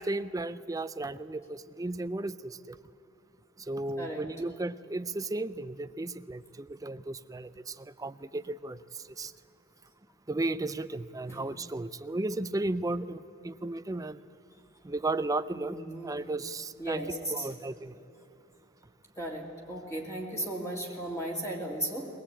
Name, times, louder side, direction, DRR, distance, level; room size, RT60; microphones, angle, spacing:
voice 1, 0.0-2.8 3.6-9.3 10.3-14.2 14.8-15.8 16.0-17.0 17.3-18.0 20.9-21.0, right 2 dB, 15° right, 13 dB, 0.5 m, -34 dB
voice 2, 11.3-11.6 15.5-16.2 16.8-17.5 19.2-22.1, right 1 dB, 15° left, -1 dB, 2.3 m, -36 dB
22.5 x 18.5 x 8.7 m, 2.6 s
head